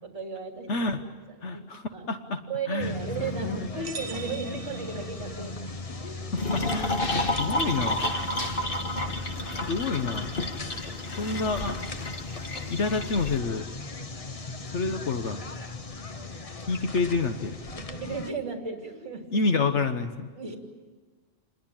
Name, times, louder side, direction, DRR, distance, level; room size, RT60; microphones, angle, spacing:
voice 1, 0.0-0.9 1.3-1.7 1.9-2.1 2.5-6.3 17.7-19.5 20.4-20.6, right 4 dB, 60° right, 3 dB, 3.2 m, -35 dB
voice 2, 0.7-1.0 1.4-2.4 2.7-2.9 3.4-3.6 6.3-8.2 9.7-10.4 11.2-11.8 12.7-13.6 14.7-15.4 16.7-17.6 19.3-20.3, left 3 dB, 65° left, 7 dB, 1.4 m, -28 dB
sound 1, 2.8-18.3, left 2 dB, 30° left, 1.1 m, -38 dB
sound 2, 3.8-5.7, right 4 dB, 90° right, 1.5 m, -42 dB
sound 3, 6.4-13.4, left 1 dB, 45° left, 1.8 m, -31 dB
27.5 x 21.5 x 8.9 m, 1.4 s
omnidirectional pair, 1.3 m